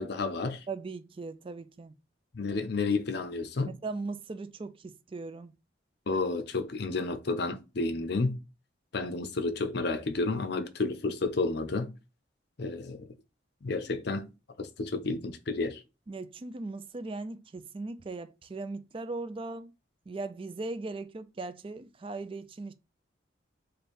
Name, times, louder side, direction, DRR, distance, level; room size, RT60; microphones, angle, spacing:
voice 1, 0.0-0.6 2.3-3.8 6.1-8.4 8.9-11.9 12.6-13.1 13.6-14.3 14.6-15.8, left 3 dB, 60° left, 0.6 m, -31 dB
voice 2, 0.7-1.9 3.8-5.5 16.1-19.7 20.1-22.7, right 3 dB, 30° right, 0.4 m, -38 dB
3.2 x 2.6 x 4.3 m
head